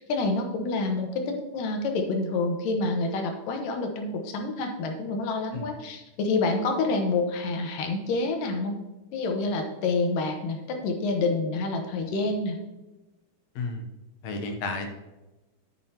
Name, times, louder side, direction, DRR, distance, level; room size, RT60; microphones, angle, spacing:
voice 1, 0.0-8.8 9.1-12.6, left 3 dB, 85° left, 4 dB, 2.8 m, -28 dB
voice 2, 13.6-13.9 14.2-14.9, left 3 dB, 65° left, 4 dB, 1.9 m, -32 dB
11.0 x 8.7 x 2.9 m, 1.1 s
omnidirectional pair, 3.8 m